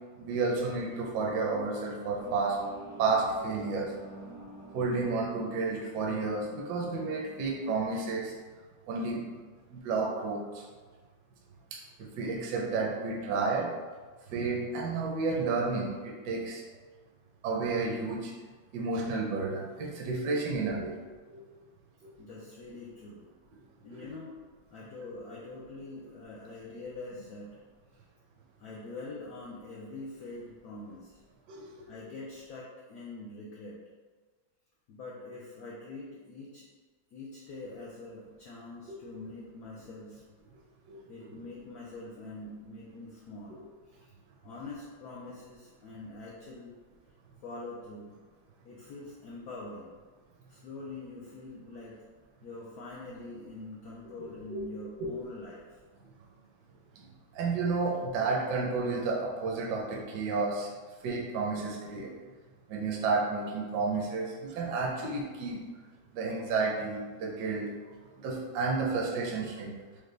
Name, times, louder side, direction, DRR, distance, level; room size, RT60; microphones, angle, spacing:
voice 1, 0.2-2.6 3.0-3.9 4.7-8.3 8.9-9.2 9.7-10.6 12.0-13.7 14.3-16.6 17.4-18.3 18.7-20.9 21.3-21.4 23.9-24.0 31.5-31.8 38.9-39.0 40.9-41.0 54.5-54.7 57.0-57.1 57.3-60.7 61.0-62.1 62.7-65.6 66.1-67.7 68.2-69.7, right 4 dB, 70° right, -2 dB, 1.1 m, -31 dB
sound 1, 2.1-8.0, right 2 dB, 90° right, 2.1 m, -48 dB
voice 2, 22.2-23.3 23.8-24.4 24.7-27.6 28.6-31.2 31.9-33.8 34.9-36.7 37.1-40.2 41.1-44.1 44.4-46.7 47.4-48.2 48.6-50.0 50.5-52.0 52.4-55.8, left 2 dB, 75° left, -4 dB, 0.8 m, -44 dB
5.0 x 2.2 x 3.2 m, 1.4 s
omnidirectional pair, 2.2 m